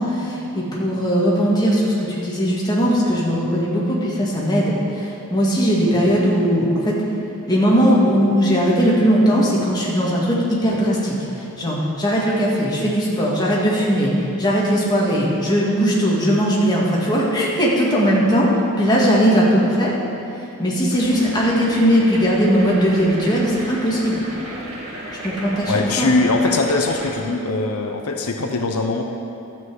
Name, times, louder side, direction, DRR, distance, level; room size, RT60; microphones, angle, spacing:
voice 1, 0.0-6.9 7.5-19.9 20.6-24.2 25.2-26.1, equal, 20° left, -5 dB, 2.1 m, -19 dB
sound 1, 20.9-27.1, right 1 dB, 70° right, 2.4 m, -34 dB
voice 2, 25.7-29.0, left 3 dB, 80° left, 3 dB, 0.8 m, -21 dB
12.5 x 5.6 x 7.9 m, 2.8 s
head